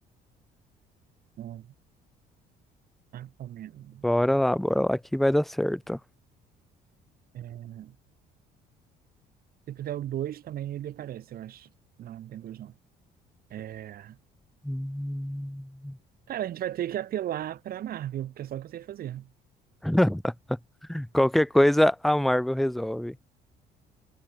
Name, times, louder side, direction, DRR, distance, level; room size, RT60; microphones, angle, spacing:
voice 1, 1.4-1.7 3.1-4.0 7.3-8.0 9.7-11.7 12.0-12.7 13.5-14.2 16.3-19.3, right 12 dB, 60° right, 5.9 m, -36 dB
voice 2, 4.0-6.0 14.6-16.0 19.8-20.3 20.9-23.2, left 1 dB, ahead, 0.4 m, -24 dB
cardioid pair, 110°, 17 cm